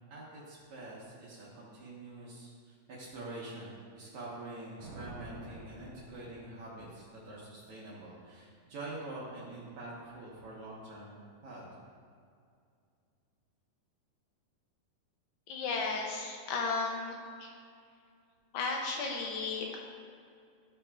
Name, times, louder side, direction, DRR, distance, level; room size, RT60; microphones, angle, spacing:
voice 1, 0.1-11.7, right 2 dB, 70° right, -6 dB, 1.7 m, -46 dB
Thunder, 4.8-7.0, right 2 dB, 50° right, 2.4 m, -49 dB
voice 2, 15.5-17.1 17.4-17.5 18.5-19.8, left 4 dB, 80° left, 0 dB, 2.7 m, -34 dB
13.5 x 5.6 x 2.4 m, 2.3 s
omnidirectional pair, 5.0 m